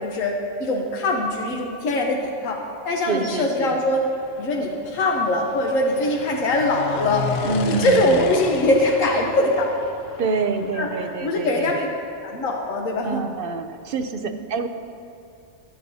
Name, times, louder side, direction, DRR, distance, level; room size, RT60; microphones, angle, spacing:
voice 1, 0.0-4.0 4.4-7.3 7.6-9.7 10.7-10.9 11.2-11.8 12.2-13.2 14.2-14.3, left 1 dB, 85° left, 0 dB, 1.3 m, -22 dB
voice 2, 3.1-3.8 7.4-8.2 10.2-11.9 13.0-14.7, right 4 dB, 55° right, 8 dB, 0.7 m, -27 dB
sound 1, 3.9-11.4, left 5 dB, 60° left, 0.8 m, -34 dB
22.0 x 7.7 x 2.7 m, 2.6 s
omnidirectional pair, 1.3 m